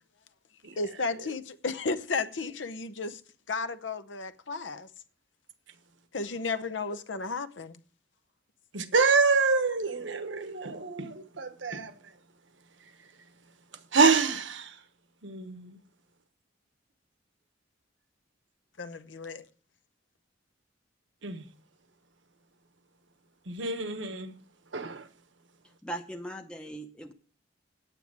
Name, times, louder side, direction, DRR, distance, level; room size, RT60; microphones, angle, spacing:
voice 1, 0.8-3.2 3.5-4.9 6.1-7.8 18.8-19.4, left 4 dB, 75° left, 0.8 m, -33 dB
voice 2, 8.7-11.9 13.9-14.7 15.2-15.8 21.2-21.4 23.5-24.3 24.7-25.1, right 4 dB, 75° right, 1.1 m, -26 dB
voice 3, 25.8-27.1, right 1 dB, 5° left, 0.7 m, -39 dB
9.3 x 9.1 x 6.1 m
head